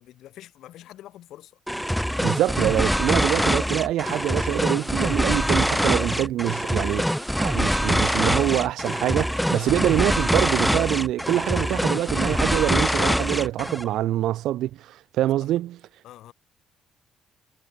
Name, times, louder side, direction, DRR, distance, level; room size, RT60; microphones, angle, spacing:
voice 1, 0.0-1.5 9.5-9.8 16.0-16.3, left 13 dB, 80° left, 4.7 m, -45 dB
sound 1, 1.7-13.9, equal, ahead, 0.4 m, -24 dB
voice 2, 2.2-15.8, right 14 dB, 85° right, 0.6 m, -25 dB
cardioid pair, 80°, 0 cm